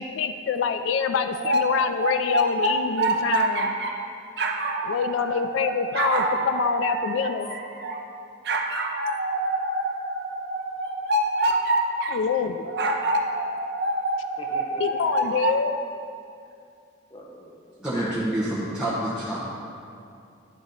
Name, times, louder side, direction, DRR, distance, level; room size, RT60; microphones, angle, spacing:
voice 1, 0.0-3.8 4.8-7.5 12.1-12.7 14.8-15.8, left 6 dB, 85° left, 9 dB, 0.3 m, -26 dB
sound 1, 1.3-4.0 4.4-8.0 8.5-12.2 12.7-15.6, right 2 dB, 55° right, 0.6 m, -26 dB
voice 2, 14.4-15.2 17.1-18.2 18.6-18.7 19.1-19.2, left 1 dB, 25° left, -1 dB, 0.7 m, -41 dB
voice 3, 17.8-19.5, right 1 dB, 5° right, -10 dB, 0.8 m, -27 dB
10.5 x 4.1 x 3.9 m, 2.5 s
head